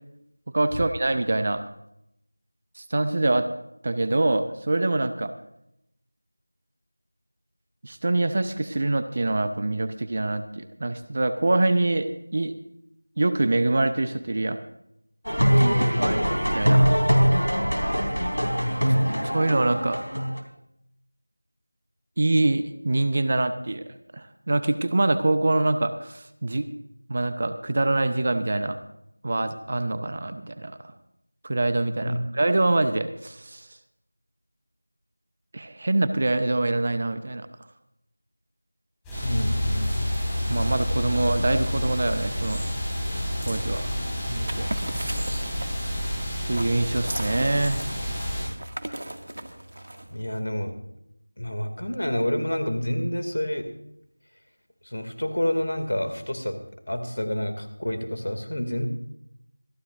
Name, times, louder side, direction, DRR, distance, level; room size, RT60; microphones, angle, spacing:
voice 1, 0.5-1.6 2.8-3.5 3.8-5.3 7.8-12.5 13.2-14.6 15.5-16.2 16.4-16.8 19.3-20.0 22.2-23.8 24.1-26.7 27.1-28.8 29.2-30.7 31.4-33.6 35.5-37.5 40.5-42.6 43.5-43.8 44.3-44.7 46.4-47.8, right 2 dB, 30° right, 11 dB, 0.7 m, -25 dB
sound 1, 15.2-20.4, equal, 90° left, 3.3 m, -22 dB
voice 2, 15.7-16.2 18.3-19.1 32.0-32.2 39.2-40.1 50.1-50.7 51.4-53.7 54.8-56.6 56.9-58.9, equal, 60° left, 7 dB, 2.4 m, -28 dB
sound 2, 39.0-48.4, equal, 5° left, 5.4 m, -28 dB
sound 3, 44.4-50.4, right 1 dB, 55° right, 2.1 m, -37 dB
26.0 x 11.5 x 2.6 m, 0.79 s
figure-of-eight pair, 170°, 0 cm